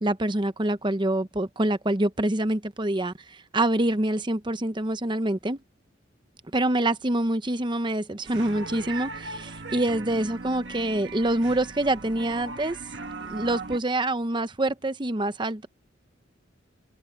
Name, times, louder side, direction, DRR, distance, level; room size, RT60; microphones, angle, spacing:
voice 1, 0.0-5.6 6.5-12.8 13.2-15.7, right 1 dB, 25° right, 0.8 m, -26 dB
sound 1, 8.2-13.8, right 3 dB, 60° right, 1.7 m, -38 dB
head